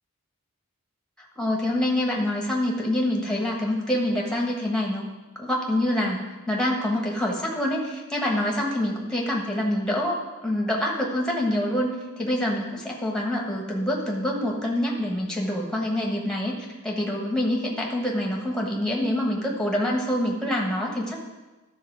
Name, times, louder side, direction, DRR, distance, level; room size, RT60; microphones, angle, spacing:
voice 1, 1.4-5.0 5.4-11.9 12.2-21.2, left 1 dB, 5° left, -1 dB, 1.4 m, -26 dB
12.0 x 4.2 x 6.1 m, 1.1 s
head